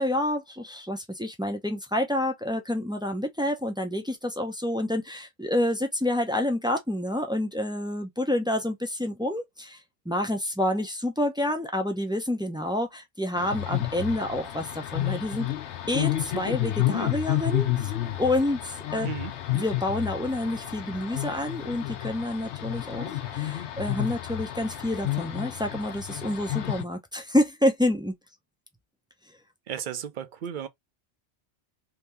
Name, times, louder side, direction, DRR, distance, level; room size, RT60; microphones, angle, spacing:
voice 1, 0.0-9.8 10.1-15.5 15.9-19.1 19.5-28.1, left 1 dB, 5° right, 0.4 m, -28 dB
sound 1, 13.4-26.8, left 14 dB, 80° left, 0.9 m, -30 dB
voice 2, 29.7-30.7, right 8 dB, 55° right, 0.6 m, -34 dB
2.9 x 2.7 x 3.4 m
omnidirectional pair, 1.2 m